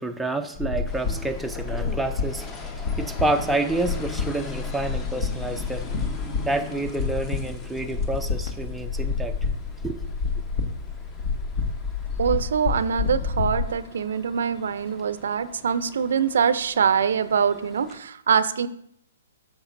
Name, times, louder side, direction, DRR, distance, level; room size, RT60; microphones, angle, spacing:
voice 1, 0.0-5.9 6.4-9.4 9.8-10.0, right 2 dB, 5° right, 0.5 m, -29 dB
sound 1, 0.5-13.6, left 4 dB, 50° left, 1.3 m, -29 dB
sound 2, 0.9-18.0, left 4 dB, 25° left, 0.9 m, -43 dB
voice 2, 12.2-18.7, right 7 dB, 65° right, 0.5 m, -24 dB
12.5 x 6.1 x 2.6 m
figure-of-eight pair, 125°, 0 cm